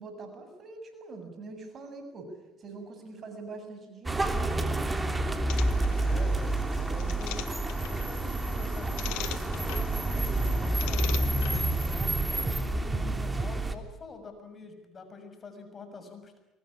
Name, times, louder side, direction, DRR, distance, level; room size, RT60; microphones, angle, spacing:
voice 1, 0.0-5.1, right 3 dB, 45° right, 6 dB, 7.6 m, -44 dB
sound 1, 4.1-13.7, right 2 dB, 15° right, 3.0 m, -28 dB
sound 2, 5.5-11.9, left 16 dB, 80° left, 1.5 m, -43 dB
voice 2, 5.7-7.4 7.9-11.3 11.9-16.4, left 4 dB, 35° left, 7 dB, 6.7 m, -46 dB
24.0 x 21.5 x 8.7 m, 0.99 s
supercardioid pair, 80°, 0 cm